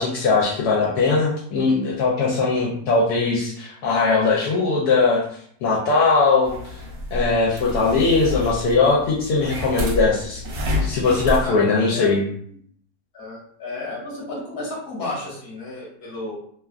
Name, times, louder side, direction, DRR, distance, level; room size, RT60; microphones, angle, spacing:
voice 1, 0.0-5.2 5.6-6.5 7.1-10.4 10.7-12.2, left 4 dB, 75° left, -4 dB, 1.1 m, -20 dB
sound 1, 6.4-11.5, left 2 dB, 70° right, 1.0 m, -29 dB
voice 2, 11.4-12.1 12.5-12.6 13.1-16.3, left 2 dB, 45° left, -4 dB, 1.1 m, -32 dB
3.1 x 2.2 x 2.3 m, 0.64 s
omnidirectional pair, 1.8 m